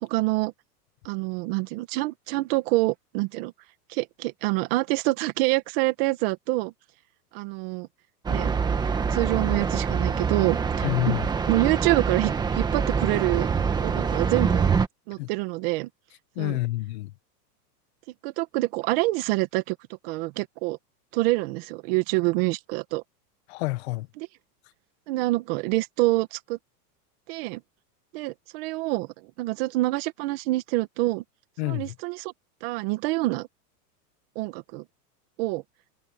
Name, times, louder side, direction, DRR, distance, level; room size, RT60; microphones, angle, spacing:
voice 1, 0.0-0.5 1.1-3.5 3.9-6.7 7.3-7.9 8.3-8.5 9.1-11.2 11.5-13.5 13.8-14.7 15.1-15.9 16.4-16.6 18.2-19.8 20.0-20.8 21.1-23.0 24.2-24.3 25.1-26.6 27.3-27.6 28.1-29.1 29.4-31.2 31.6-32.3 32.6-33.5 34.4-34.8 35.4-35.6, right 21 dB, 40° right, 1.9 m, -26 dB
sound 1, 8.3-14.9, right 6 dB, 10° right, 1.3 m, -25 dB
voice 2, 10.8-11.3 15.2-15.3 16.4-17.1 23.5-24.1 31.6-31.9, left 20 dB, 40° left, 1.3 m, -28 dB
supercardioid pair, 165°, 47 cm